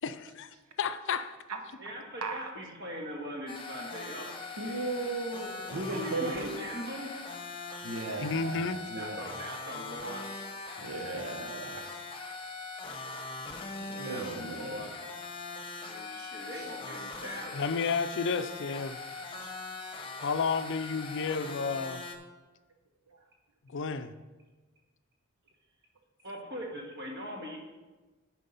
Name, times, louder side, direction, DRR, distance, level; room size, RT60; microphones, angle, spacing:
voice 1, 0.0-1.4 8.2-8.8 17.5-19.0 20.2-22.0 23.7-24.1, left 5 dB, 60° left, 11 dB, 0.5 m, -31 dB
voice 2, 1.8-4.8 5.9-7.1 9.0-10.4 13.9-14.9 15.9-17.6 19.1-19.2 26.2-27.6, equal, 55° right, 0 dB, 1.8 m, -41 dB
sound 1, 3.5-22.2, left 3 dB, 25° left, 0.9 m, -41 dB
voice 3, 4.6-6.5 7.8-9.3 10.8-12.0 14.0-14.9 16.2-16.7 20.0-20.3, right 3 dB, 85° right, 5 dB, 1.0 m, -37 dB
10.0 x 4.6 x 5.5 m, 1.2 s
head